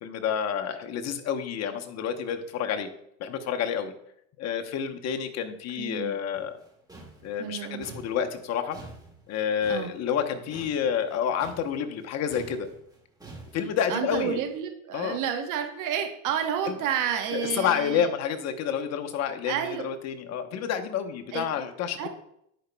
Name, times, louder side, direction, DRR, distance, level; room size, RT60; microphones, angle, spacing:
voice 1, 0.0-2.9 3.2-3.9 4.4-6.5 7.2-8.8 9.3-12.7 13.5-14.4 14.9-15.2 16.7-16.8 17.3-19.5 19.8-22.1, left 8 dB, 40° left, 6 dB, 0.9 m, -29 dB
voice 2, 5.8-6.2 7.4-7.9 9.7-9.9 13.9-18.1 19.5-19.9 21.3-21.6 22.0-22.1, right 9 dB, 50° right, 5 dB, 1.1 m, -30 dB
sound 1, 6.3-12.1 12.3-14.5, right 2 dB, 10° right, 1.5 m, -47 dB
10.5 x 5.0 x 2.2 m, 0.73 s
hypercardioid pair, 95°, 39 cm